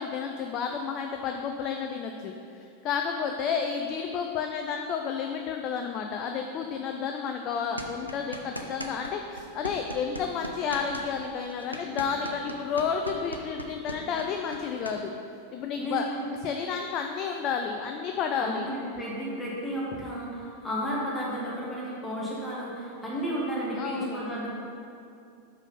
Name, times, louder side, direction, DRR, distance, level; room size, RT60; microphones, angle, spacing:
voice 1, 0.0-15.1 15.5-18.7 23.7-24.2, left 6 dB, 35° left, 4 dB, 0.4 m, -31 dB
sound 1, 7.8-9.1 9.4-15.0, equal, 90° right, 0.5 m, -38 dB
voice 2, 15.7-16.2 18.4-24.5, equal, 10° left, -7 dB, 1.4 m, -33 dB
5.5 x 5.0 x 5.5 m, 2.5 s
figure-of-eight pair, 90°, 0 cm